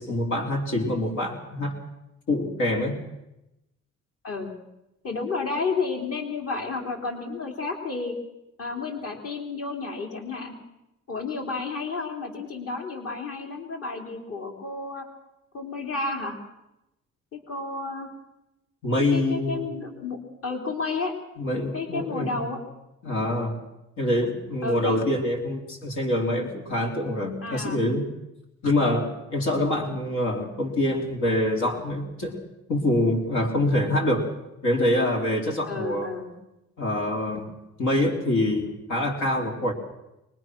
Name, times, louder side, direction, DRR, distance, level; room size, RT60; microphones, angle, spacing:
voice 1, 0.0-1.8 2.3-3.0 18.8-19.7 21.4-22.4 23.0-23.6 24.0-28.1 28.6-32.4 32.7-34.3 34.6-36.1 36.8-37.5 37.8-39.7, left 1 dB, 70° left, 1 dB, 3.7 m, -25 dB
voice 2, 5.0-8.2 8.6-10.5 11.1-15.1 15.5-16.4 17.3-18.1 19.0-21.1 21.7-22.6 24.6-25.0 27.4-27.9 35.7-36.3, left 4 dB, 50° left, 2 dB, 3.8 m, -31 dB
24.0 x 21.5 x 6.2 m, 0.92 s
cardioid pair, 90°, 30 cm